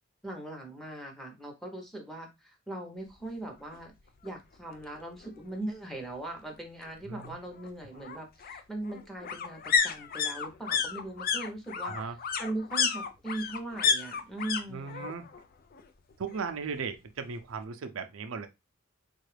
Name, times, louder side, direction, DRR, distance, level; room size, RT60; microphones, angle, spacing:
voice 1, 0.2-3.9 4.2-12.0 12.4-15.1, right 2 dB, ahead, 0.8 m, -39 dB
sound 1, 3.7-3.8 4.2-4.3 4.5-5.5 6.8-14.6 14.9-15.4 15.7-16.8 17.1-17.2, left 6 dB, 45° left, 0.4 m, -31 dB
voice 2, 7.1-7.4 11.8-12.2 14.7-15.3 16.2-18.5, right 5 dB, 85° right, 0.5 m, -37 dB
3.6 x 2.4 x 3.2 m
head